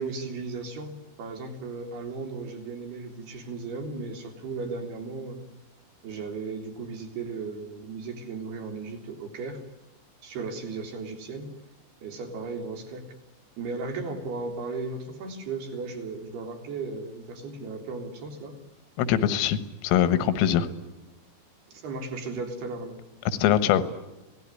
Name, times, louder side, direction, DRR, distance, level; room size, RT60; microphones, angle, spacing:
voice 1, 0.0-5.4 6.0-9.6 10.2-11.5 12.0-13.1 13.6-18.6 21.7-23.0, right 4 dB, 55° right, 5 dB, 5.3 m, -36 dB
voice 2, 19.0-20.7 23.4-23.8, left 10 dB, 85° left, 13 dB, 4.0 m, -22 dB
26.5 x 19.0 x 9.9 m, 1.0 s
omnidirectional pair, 5.8 m